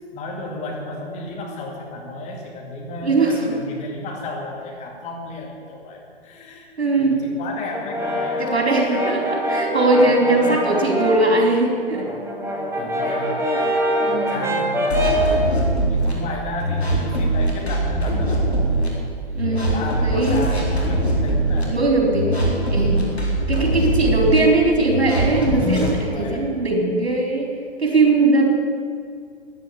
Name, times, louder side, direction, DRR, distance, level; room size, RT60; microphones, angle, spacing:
voice 1, 0.1-6.7 7.0-8.6 9.9-10.8 12.8-13.4 14.0-18.9 19.5-22.5 26.1-26.6, left 2 dB, 20° left, 0 dB, 2.4 m, -33 dB
voice 2, 3.0-3.5 6.8-7.2 8.4-12.1 14.0-14.4 19.3-19.7 20.0-20.4 21.7-22.4 22.7-23.0 23.5-27.5 27.8-28.5, right 2 dB, 75° right, 0 dB, 4.5 m, -19 dB
Brass instrument, 7.7-11.4 11.8-15.4, equal, 10° right, 2.2 m, -24 dB
sound 1, 14.9-16.1 16.6-18.9 19.4-21.6 22.1-24.4 24.9-25.9, right 1 dB, 80° left, 4.4 m, -21 dB
14.5 x 10.5 x 8.5 m, 2.1 s
figure-of-eight pair, 120°, 32 cm